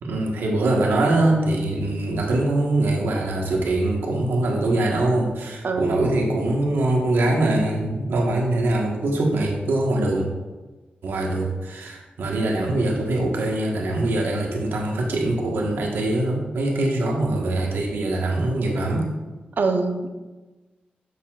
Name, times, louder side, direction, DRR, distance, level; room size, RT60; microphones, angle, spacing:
voice 1, 0.0-10.3 11.0-19.1, right 2 dB, 90° right, 0 dB, 1.3 m, -23 dB
voice 2, 5.6-6.0 19.6-20.1, right 3 dB, 65° right, 6 dB, 0.7 m, -23 dB
8.1 x 7.3 x 2.4 m, 1.2 s
cardioid pair, 65°, 4 cm